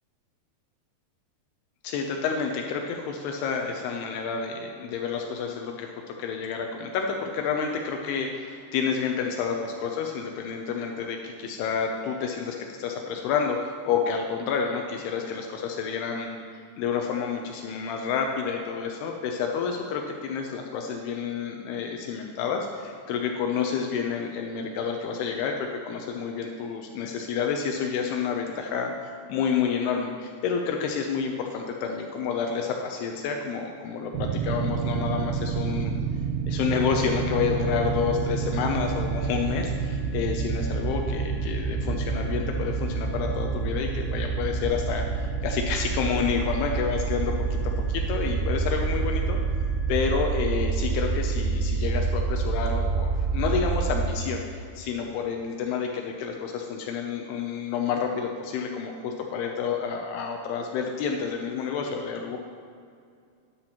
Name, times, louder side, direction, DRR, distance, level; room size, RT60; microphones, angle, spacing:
voice 1, 1.8-35.9 36.5-49.4 49.9-62.4, left 6 dB, 90° left, 2 dB, 2.3 m, -29 dB
sound 1, 34.1-54.1, right 5 dB, 80° right, 2.6 m, -28 dB
sound 2, 37.6-49.9, equal, 40° left, 3.3 m, -42 dB
11.5 x 10.5 x 2.9 m, 2.3 s
omnidirectional pair, 5.4 m